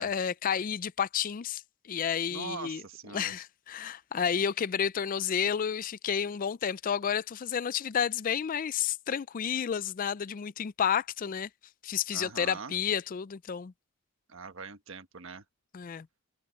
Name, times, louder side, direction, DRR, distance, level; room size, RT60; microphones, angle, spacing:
voice 1, 0.0-1.6 1.9-2.8 3.1-11.5 11.8-13.7 15.7-16.1, left 8 dB, 40° left, 0.4 m, -31 dB
voice 2, 2.3-3.3 12.1-12.7 14.3-15.4, right 4 dB, 60° right, 1.4 m, -42 dB
head